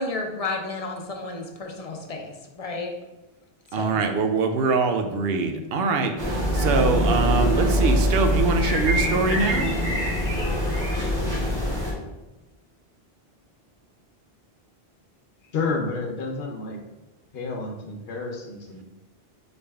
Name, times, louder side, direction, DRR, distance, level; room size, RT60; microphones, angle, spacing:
voice 1, 0.0-2.9 3.7-4.0, left 2 dB, 40° left, 2 dB, 0.6 m, -32 dB
voice 2, 3.7-9.7, right 4 dB, 70° right, 6 dB, 0.8 m, -24 dB
sound 1, 6.2-11.9, equal, 50° right, 1.8 m, -23 dB
voice 3, 15.5-16.8 17.3-18.8, left 3 dB, 70° left, 0 dB, 1.0 m, -30 dB
4.1 x 3.3 x 3.4 m, 1.0 s
omnidirectional pair, 1.1 m